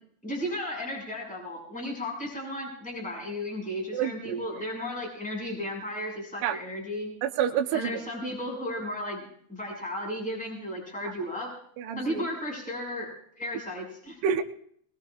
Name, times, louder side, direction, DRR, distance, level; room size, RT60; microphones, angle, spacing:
voice 1, 0.2-7.1 7.7-11.5 11.9-13.1 13.4-14.2, left 1 dB, ahead, -1 dB, 5.7 m, -34 dB
voice 2, 3.9-4.4 6.4-6.6 7.2-8.0 11.8-12.3 14.2-14.4, right 8 dB, 75° right, 3 dB, 2.6 m, -28 dB
22.0 x 21.0 x 2.5 m, 0.64 s
omnidirectional pair, 5.8 m